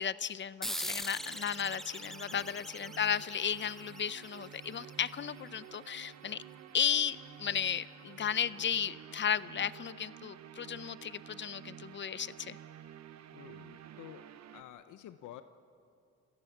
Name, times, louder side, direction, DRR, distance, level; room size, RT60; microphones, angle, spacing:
voice 1, 0.0-6.4 6.7-12.6, left 8 dB, 40° left, 17 dB, 0.6 m, -34 dB
sound 1, 0.6-5.6, equal, ahead, 0.7 m, -42 dB
sound 2, 1.1-14.6, right 9 dB, 65° right, 1.0 m, -51 dB
voice 2, 2.3-2.7 13.3-14.2 14.5-15.4, left 12 dB, 80° left, 10 dB, 0.8 m, -50 dB
27.5 x 17.0 x 7.3 m, 2.5 s
cardioid pair, 90°, 30 cm